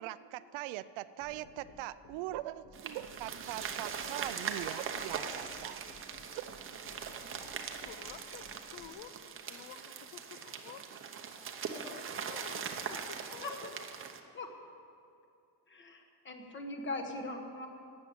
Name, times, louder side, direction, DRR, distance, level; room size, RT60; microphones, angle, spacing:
voice 1, 0.0-5.8 6.3-6.6 7.1-7.2 7.5-7.6, right 15 dB, 75° right, 15 dB, 0.6 m, -42 dB
sound 1, 1.2-8.9, left 2 dB, 45° left, 1.1 m, -56 dB
sound 2, 2.7-14.2, right 6 dB, 25° right, 0.7 m, -41 dB
voice 2, 7.8-10.8 11.3-11.4 11.7-13.8, left 9 dB, 75° left, 11 dB, 0.9 m, -51 dB
voice 3, 15.7-17.7, left 2 dB, 25° left, 4 dB, 1.3 m, -40 dB
12.5 x 8.7 x 8.6 m, 2.6 s
cardioid pair, 170°, 47 cm